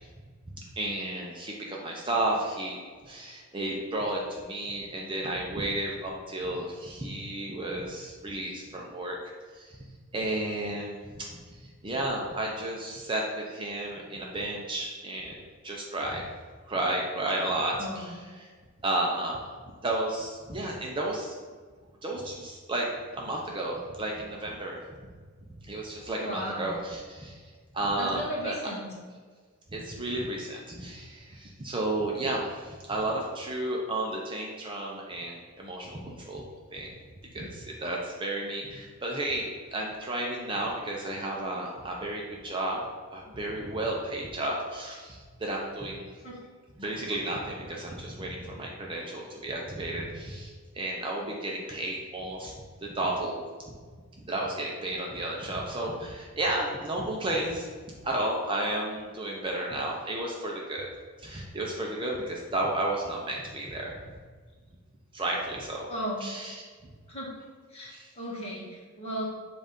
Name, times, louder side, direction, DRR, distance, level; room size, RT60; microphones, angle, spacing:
voice 1, 0.5-9.2 9.5-9.8 10.1-15.4 15.6-16.2 16.7-18.5 18.8-19.4 19.8-21.3 22.0-22.9 23.2-24.8 25.7-27.4 27.7-28.6 29.7-36.4 36.7-36.9 37.3-42.8 43.1-46.1 46.8-52.5 52.8-53.4 53.7-53.8 54.2-57.7 58.0-60.9 61.2-64.1 65.1-65.9 66.2-66.5 67.9-68.1, right 1 dB, 20° right, -2 dB, 0.5 m, -32 dB
voice 2, 17.8-18.1 26.2-26.7 28.0-28.9 46.2-46.3 65.9-66.2 67.1-67.3 67.7-69.2, equal, 30° left, -4 dB, 1.3 m, -35 dB
7.5 x 2.5 x 5.2 m, 1.5 s
head